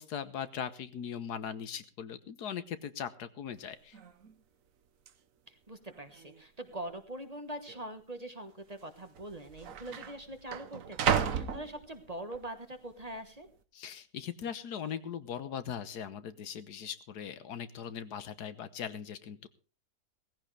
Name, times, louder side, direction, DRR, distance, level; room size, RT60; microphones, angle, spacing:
voice 1, 0.0-4.0 13.7-19.5, left 8 dB, 80° left, 12 dB, 1.6 m, -40 dB
sound 1, 3.6-3.7 3.9-4.3 5.1-5.2 5.9-6.4 6.7-6.8 7.7-7.8 8.8-8.9 9.2-12.4 12.9-13.3, right 7 dB, 60° right, 1.3 m, -34 dB
voice 2, 5.5-13.5, right 1 dB, 25° right, 8 dB, 1.3 m, -43 dB
17.0 x 15.5 x 3.3 m, 0.35 s
omnidirectional pair, 1.7 m